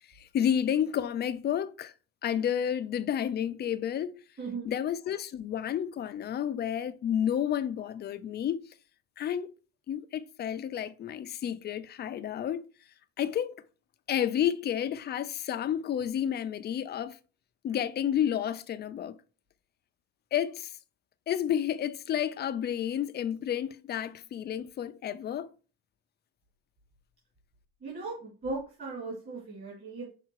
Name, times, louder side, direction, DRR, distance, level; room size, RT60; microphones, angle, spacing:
voice 1, 0.1-1.9 2.2-4.2 4.6-8.6 9.2-9.5 9.9-12.6 13.2-13.6 14.1-17.2 17.6-19.2 20.3-20.7 21.3-25.5, left 9 dB, 30° left, 0.5 m, -30 dB
voice 2, 4.4-4.7 27.8-30.1, right 3 dB, 30° right, 2.8 m, -37 dB
5.8 x 3.9 x 4.6 m
cardioid pair, 125°, 32 cm